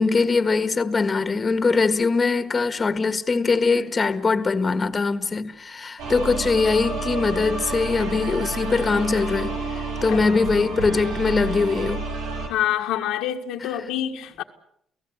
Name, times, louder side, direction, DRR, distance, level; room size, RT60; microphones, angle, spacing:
voice 1, 0.0-12.0 13.6-13.7, left 4 dB, 30° left, 1.7 m, -22 dB
sound 1, 6.0-12.5, right 3 dB, 90° right, 6.0 m, -30 dB
voice 2, 12.5-14.4, left 11 dB, 90° left, 1.7 m, -26 dB
29.5 x 17.5 x 8.1 m
cardioid pair, 100°, 0 cm